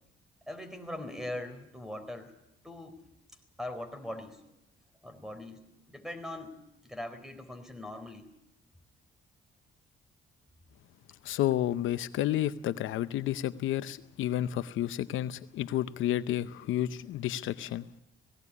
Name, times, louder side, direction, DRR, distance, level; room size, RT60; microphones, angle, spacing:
voice 1, 0.5-2.3 2.6-3.0 3.6-4.4 5.0-5.6 5.9-6.6 6.8-8.3, left 1 dB, ahead, 8 dB, 4.1 m, -40 dB
voice 2, 11.2-17.8, left 12 dB, 80° left, 13 dB, 0.7 m, -31 dB
18.5 x 16.5 x 9.7 m, 0.83 s
cardioid pair, 90°, 20 cm